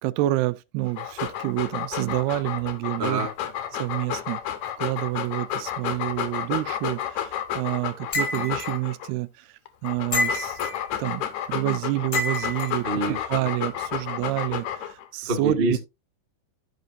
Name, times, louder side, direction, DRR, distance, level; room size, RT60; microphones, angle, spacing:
voice 1, 0.0-3.3 3.7-4.4 4.8-9.5 9.8-10.7 11.0-13.0 13.3-15.8, right 17 dB, 85° right, 2.5 m, -28 dB
Dog, 0.9-9.1 9.7-15.1, left 10 dB, 75° left, 1.7 m, -31 dB
voice 2, 3.0-3.3 12.8-13.2 15.3-15.8, right 2 dB, 40° right, 0.7 m, -25 dB
sound 1, 8.1-8.7 10.1-10.8 12.1-12.7, left 2 dB, 60° left, 0.8 m, -27 dB
13.5 x 5.2 x 2.6 m
omnidirectional pair, 4.5 m